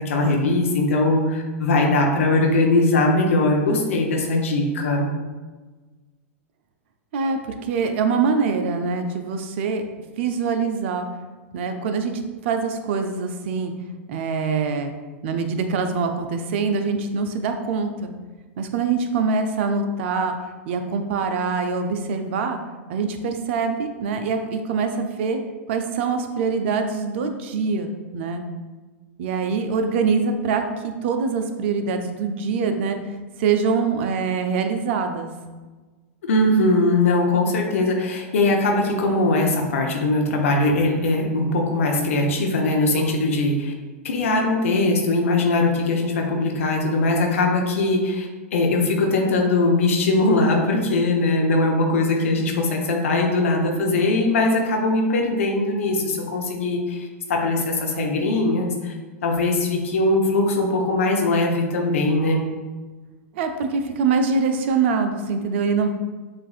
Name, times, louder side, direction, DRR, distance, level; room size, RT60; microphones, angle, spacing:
voice 1, 0.0-5.1 36.2-43.7 44.0-58.9 59.2-62.4, left 2 dB, 70° left, 0 dB, 0.7 m, -21 dB
voice 2, 7.1-9.8 10.2-11.1 11.5-13.7 14.1-14.9 15.2-18.1 18.6-20.4 20.7-22.6 22.9-25.4 25.7-28.4 29.2-30.6 31.0-33.0 33.4-35.3 63.3-65.9, right 5 dB, 60° right, 6 dB, 0.5 m, -24 dB
7.2 x 2.5 x 2.4 m, 1.3 s
hypercardioid pair, 100°, 7 cm